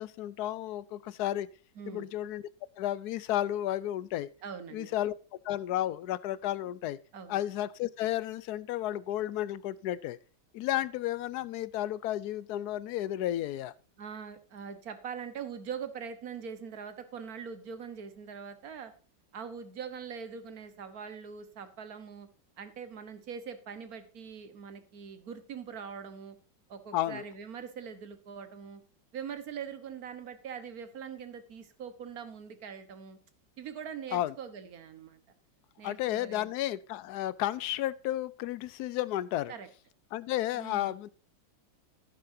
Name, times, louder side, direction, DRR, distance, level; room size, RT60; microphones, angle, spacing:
voice 1, 0.0-1.5 1.9-2.4 2.8-4.3 4.7-5.1 5.4-7.0 7.3-10.2 10.5-13.7 26.9-27.2 34.1-34.3 35.8-39.5 40.1-41.1, left 13 dB, 70° left, 1.0 m, -32 dB
voice 2, 1.8-2.1 4.4-4.9 7.1-7.4 14.0-18.9 19.3-22.3 22.6-26.4 26.7-28.8 29.1-33.2 33.6-35.2 35.8-36.5 39.5-39.7 40.5-40.9, right 7 dB, 55° right, 1.6 m, -42 dB
11.0 x 11.0 x 2.7 m
omnidirectional pair, 2.0 m